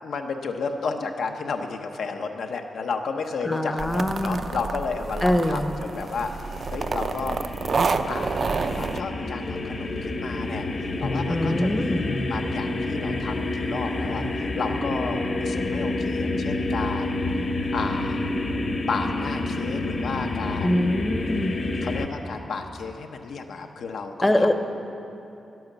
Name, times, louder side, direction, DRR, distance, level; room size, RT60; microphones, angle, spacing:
voice 1, 0.0-7.7 8.0-17.2 17.7-18.2 18.9-20.9 21.8-24.5, left 4 dB, 80° left, 4 dB, 0.7 m, -32 dB
voice 2, 3.5-4.4 5.2-5.7 11.3-12.0 20.6-21.5 24.2-24.5, left 1 dB, 10° left, 8 dB, 0.7 m, -23 dB
sound 1, 3.8-9.0, right 4 dB, 45° right, 0.4 m, -29 dB
sound 2, 5.7-22.1, left 2 dB, 40° left, 0.9 m, -29 dB
12.0 x 10.5 x 7.2 m, 2.7 s
wide cardioid pair, 150°, 0 cm